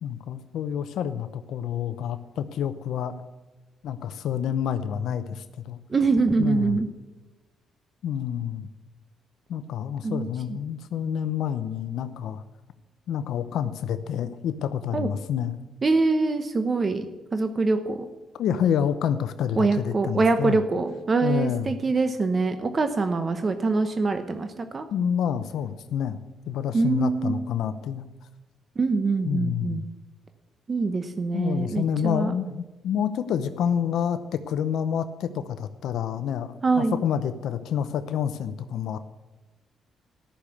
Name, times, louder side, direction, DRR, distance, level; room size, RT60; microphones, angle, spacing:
voice 1, 0.0-3.2 3.8-5.8 6.4-6.8 8.0-8.7 9.5-12.4 13.1-15.6 18.4-20.6 21.2-21.7 24.9-26.2 26.5-28.0 29.2-29.8 31.3-39.0, left 8 dB, 75° left, 11 dB, 0.7 m, -28 dB
voice 2, 5.9-6.9 10.0-10.6 14.9-15.1 15.8-18.1 19.6-24.9 26.7-27.4 28.8-29.9 30.7-32.3 36.6-37.0, right 3 dB, 35° right, 8 dB, 1.0 m, -24 dB
13.0 x 6.6 x 8.4 m, 1.1 s
cardioid pair, 90°, 0 cm